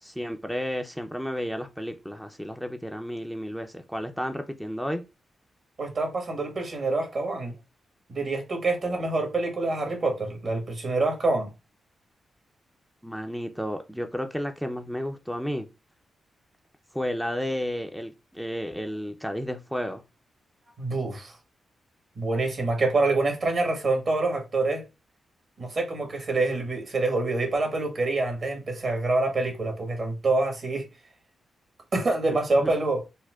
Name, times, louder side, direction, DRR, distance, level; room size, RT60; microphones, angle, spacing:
voice 1, 0.0-5.0 8.8-9.1 13.0-15.7 16.9-20.0 32.3-32.7, equal, ahead, 0.4 m, -32 dB
voice 2, 5.8-7.5 8.1-11.5 20.8-21.3 22.2-24.8 25.6-30.8 31.9-33.0, right 2 dB, 55° right, 1.3 m, -26 dB
4.3 x 2.0 x 2.3 m
supercardioid pair, 50°, 0 cm